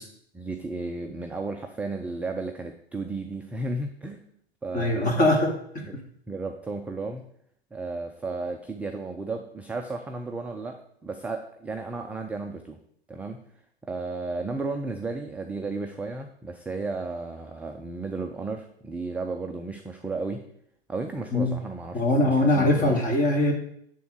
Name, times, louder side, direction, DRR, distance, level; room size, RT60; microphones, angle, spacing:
voice 1, 0.3-4.2 4.6-5.2 5.9-6.0 6.3-7.3 7.7-12.8 13.1-13.4 13.9-20.4 20.9-23.0, right 3 dB, 5° right, 4 dB, 0.4 m, -34 dB
voice 2, 4.7-5.5 5.9-6.0 21.3-21.5 21.9-23.5, left 1 dB, 25° left, 1 dB, 2.3 m, -22 dB
10.0 x 3.7 x 6.3 m, 0.67 s
hypercardioid pair, 105°, 32 cm